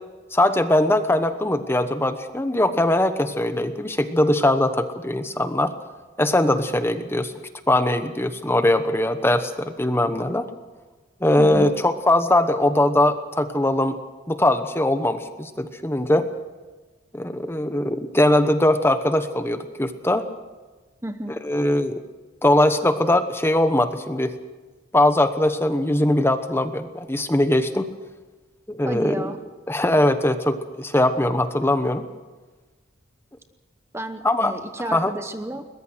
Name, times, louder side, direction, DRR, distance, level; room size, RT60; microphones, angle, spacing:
voice 1, 0.3-5.7 6.2-7.3 7.7-10.5 11.2-14.0 14.3-16.3 17.1-20.3 21.4-22.0 22.4-24.3 24.9-27.9 28.7-29.3 29.7-32.0 34.2-34.5 34.9-35.1, left 1 dB, 10° left, 10 dB, 1.0 m, -21 dB
voice 2, 11.4-11.7 21.0-21.4 28.8-29.4 33.9-35.7, right 1 dB, 15° right, 8 dB, 0.9 m, -31 dB
22.0 x 20.5 x 6.4 m, 1.3 s
head